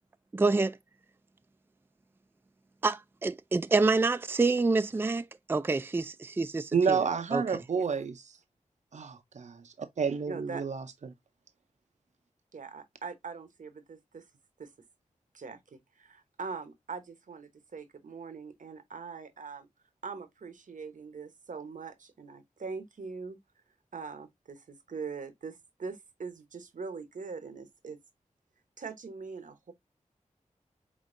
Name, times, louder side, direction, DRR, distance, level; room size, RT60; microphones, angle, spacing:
voice 1, 0.3-0.8 2.8-7.0 7.3-7.4, right 3 dB, 15° right, 0.3 m, -27 dB
voice 2, 6.7-8.4 8.9-11.1, right 6 dB, 65° right, 0.6 m, -30 dB
voice 3, 10.3-10.6 12.5-14.2 14.6-14.7 15.3-19.7 20.0-23.4 23.9-28.0 28.8-29.7, right 5 dB, 80° right, 0.9 m, -42 dB
5.2 x 3.5 x 2.5 m
wide cardioid pair, 60°, 13 cm